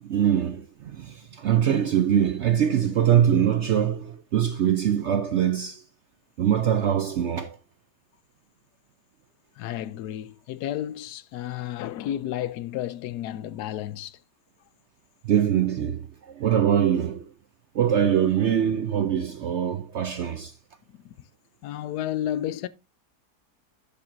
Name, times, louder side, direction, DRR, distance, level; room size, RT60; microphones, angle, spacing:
voice 1, 0.0-5.8 6.4-7.6 15.2-17.2 17.7-20.5, right 9 dB, 65° right, 0.7 m, -23 dB
voice 2, 9.6-14.2 21.0-21.1 21.6-22.7, left 12 dB, 75° left, 1.1 m, -32 dB
11.0 x 7.5 x 2.6 m
omnidirectional pair, 1.7 m